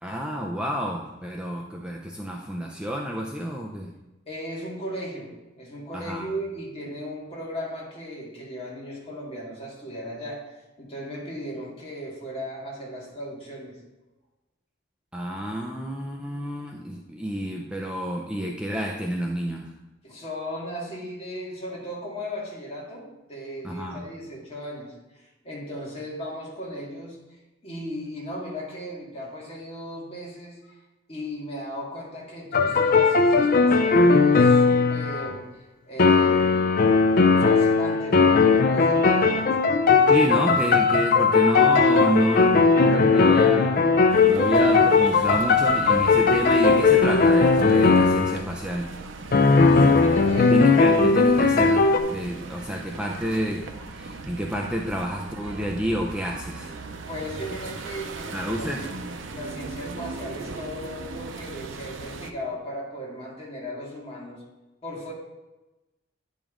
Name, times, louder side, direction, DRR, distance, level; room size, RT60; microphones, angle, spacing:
voice 1, 0.0-3.9 5.9-6.3 15.1-19.7 23.6-24.0 40.1-43.8 44.3-48.9 50.4-53.7 53.9-56.7 58.3-58.8, equal, 5° right, 0 dB, 0.5 m, -29 dB
voice 2, 4.3-13.8 20.0-30.8 31.1-36.5 37.3-39.6 39.9-40.5 49.5-51.1 57.1-58.9 59.3-64.4 64.8-65.1, equal, 30° left, -4 dB, 2.0 m, -36 dB
sound 1, 32.5-35.4 36.0-48.4 49.3-52.0, left 4 dB, 50° left, 0.4 m, -18 dB
sound 2, 44.1-62.3, right 3 dB, 85° right, 0.7 m, -38 dB
10.0 x 5.1 x 3.7 m, 1.1 s
head